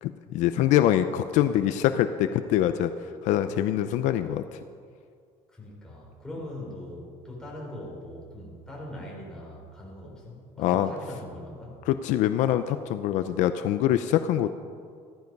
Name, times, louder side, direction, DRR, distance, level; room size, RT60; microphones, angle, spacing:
voice 1, 0.0-2.9 3.2-4.6 10.6-10.9 11.9-14.6, left 11 dB, 70° left, 10 dB, 0.6 m, -24 dB
voice 2, 5.5-11.8, left 1 dB, 5° left, -4 dB, 4.2 m, -41 dB
14.0 x 14.0 x 5.4 m, 2.1 s
cardioid pair, 150°, 13 cm